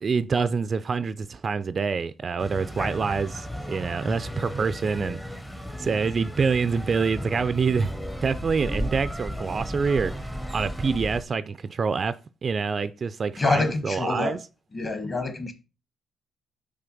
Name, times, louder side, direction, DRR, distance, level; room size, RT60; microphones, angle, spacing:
voice 1, 0.0-5.4 5.8-7.9 8.2-12.2 12.4-14.4, right 5 dB, 40° right, 0.3 m, -26 dB
sound 1, 2.4-11.2, equal, 5° left, 0.6 m, -34 dB
voice 2, 2.6-3.2 13.4-14.4 14.7-15.5, left 3 dB, 35° left, 1.2 m, -27 dB
5.7 x 3.3 x 5.2 m
cardioid pair, 90°, 0 cm